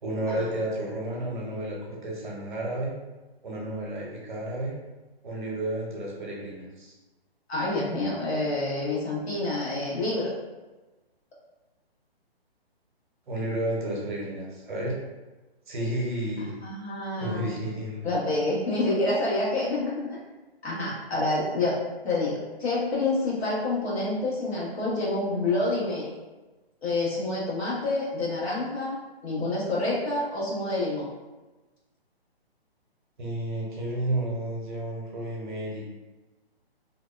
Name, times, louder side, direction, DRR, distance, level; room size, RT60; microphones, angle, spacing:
voice 1, 0.0-2.9 3.4-4.8 5.2-6.9 13.3-15.0 15.7-16.6 17.2-18.1 33.2-35.8, right 1 dB, 50° right, -2 dB, 0.7 m, -31 dB
voice 2, 7.5-10.3 16.6-17.6 18.0-20.1 20.6-21.8 22.0-26.1 26.8-28.9 29.2-31.1, left 2 dB, 80° left, -6 dB, 1.2 m, -28 dB
2.7 x 2.1 x 2.3 m, 1.1 s
hypercardioid pair, 160°, 31 cm